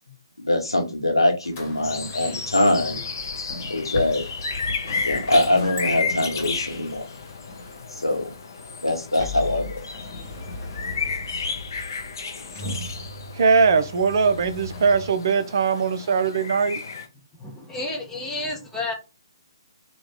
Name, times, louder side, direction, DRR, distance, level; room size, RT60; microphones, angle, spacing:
voice 1, 0.4-3.0 3.7-4.2 5.0-7.1 7.9-8.3 8.8-9.8, left 1 dB, 80° left, 1.0 m, -23 dB
sound 1, 1.4-15.1, left 2 dB, 35° left, 1.2 m, -37 dB
sound 2, 1.8-17.1, left 5 dB, 55° left, 0.5 m, -33 dB
voice 2, 13.3-16.8, right 5 dB, 50° right, 0.5 m, -20 dB
voice 3, 17.4-18.9, left 2 dB, 10° left, 0.8 m, -31 dB
3.0 x 2.3 x 3.5 m
figure-of-eight pair, 130°, 2 cm